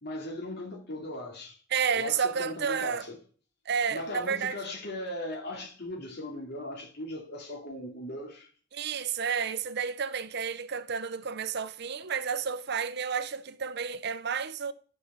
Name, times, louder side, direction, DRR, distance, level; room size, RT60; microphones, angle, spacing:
voice 1, 0.0-1.6 2.0-3.2 3.9-8.5, left 1 dB, 55° left, 2.6 m, -38 dB
voice 2, 1.7-3.0 3.7-4.6 8.7-14.7, right 6 dB, 55° right, 0.6 m, -31 dB
11.0 x 5.4 x 6.8 m
head